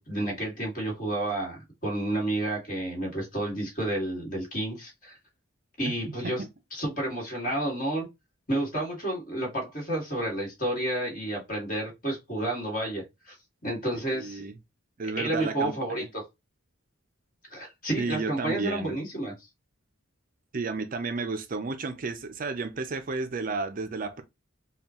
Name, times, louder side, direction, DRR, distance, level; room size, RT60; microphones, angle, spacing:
voice 1, 0.0-5.1 5.8-6.4 6.7-8.1 8.5-13.4 13.6-14.4 15.2-16.2 17.5-19.3, right 1 dB, 40° left, 1.9 m, -30 dB
voice 2, 13.9-14.5 15.0-16.1 18.0-19.0 20.5-24.2, right 3 dB, 40° right, 0.5 m, -32 dB
5.3 x 2.3 x 2.9 m
head